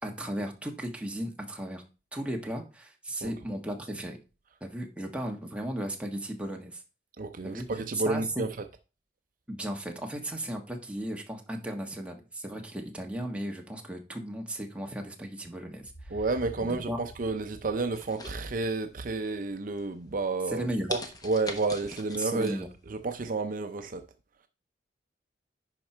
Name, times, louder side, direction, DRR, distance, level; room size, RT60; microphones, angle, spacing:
voice 1, 0.0-1.8 2.1-4.2 4.6-6.8 7.4-7.7 8.0-8.4 9.5-16.2 16.9-17.0 20.5-20.9 22.2-22.7, right 1 dB, 5° right, 1.3 m, -35 dB
voice 2, 7.2-8.6 16.1-22.6 22.9-24.0, right 3 dB, 50° right, 0.6 m, -31 dB
sound 1, 15.8-19.7, right 1 dB, 80° left, 1.4 m, -50 dB
sound 2, 17.9-19.0 19.4-19.8 20.3-20.4 20.9-22.6 23.0-23.1, left 2 dB, 20° left, 1.0 m, -40 dB
10.5 x 4.4 x 4.4 m
head